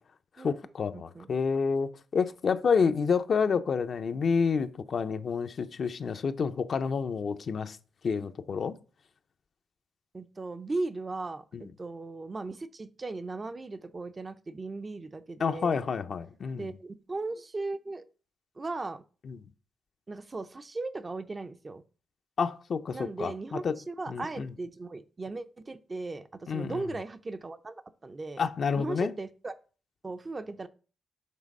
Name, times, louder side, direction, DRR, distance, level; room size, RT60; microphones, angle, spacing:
voice 1, 0.4-7.8 8.0-8.8 11.5-11.6 15.4-16.7 19.2-19.4 22.4-23.8 24.1-24.5 26.5-26.8 28.4-29.1, left 5 dB, 45° left, 0.6 m, -29 dB
voice 2, 0.9-1.3 10.1-15.9 16.6-18.0 18.6-19.0 20.1-21.8 22.9-28.4 28.8-29.5 30.0-30.7, right 3 dB, 25° right, 0.5 m, -37 dB
7.3 x 3.3 x 5.4 m
cardioid pair, 115°, 0 cm